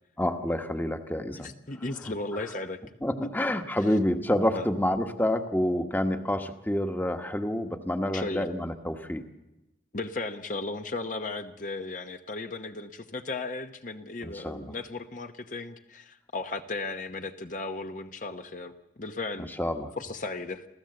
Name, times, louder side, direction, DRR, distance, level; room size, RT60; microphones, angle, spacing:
voice 1, 0.2-1.5 2.3-2.4 3.0-9.2 14.2-14.7 19.6-19.9, left 1 dB, 10° left, 7 dB, 1.2 m, -28 dB
voice 2, 1.4-2.8 4.5-4.6 8.1-8.4 9.9-19.5 20.0-20.7, left 3 dB, 45° left, 7 dB, 1.0 m, -35 dB
28.0 x 15.0 x 7.8 m, 0.97 s
head